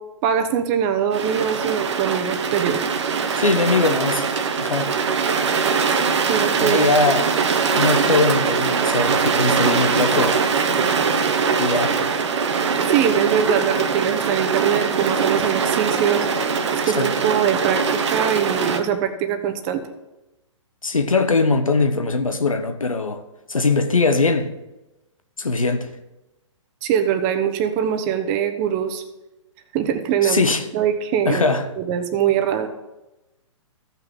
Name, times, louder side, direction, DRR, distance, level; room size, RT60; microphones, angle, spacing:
voice 1, 0.2-2.8 6.3-6.9 12.9-16.3 16.7-19.8 26.8-29.0 29.7-30.4 30.7-31.4 31.8-32.7, right 9 dB, 30° right, 1.0 m, -22 dB
sound 1, 1.1-18.8, right 5 dB, 60° right, 1.0 m, -22 dB
voice 2, 3.4-4.3 4.6-4.9 6.6-7.4 7.7-10.4 11.6-12.0 16.9-17.1 20.8-23.2 23.5-24.5 25.4-25.9 30.2-30.6 31.2-31.7, left 3 dB, 85° left, 1.0 m, -21 dB
15.0 x 5.8 x 3.7 m
figure-of-eight pair, 125°, 17 cm